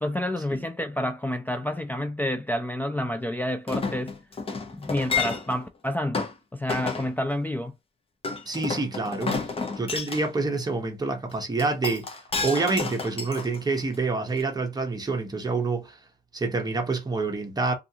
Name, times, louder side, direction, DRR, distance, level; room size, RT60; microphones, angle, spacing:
voice 1, 0.0-4.2 4.7-7.7, left 1 dB, 10° left, 0.3 m, -29 dB
Chink clink, 3.7-5.6 6.1-6.3 6.7-7.1 8.2-10.2 11.6-13.9 14.4-14.5, left 4 dB, 30° left, 0.7 m, -30 dB
voice 2, 8.5-9.5 9.8-12.1 12.4-16.0 16.3-17.7, right 3 dB, 20° right, 0.8 m, -27 dB
2.4 x 2.4 x 2.8 m
cardioid pair, 90°, 20 cm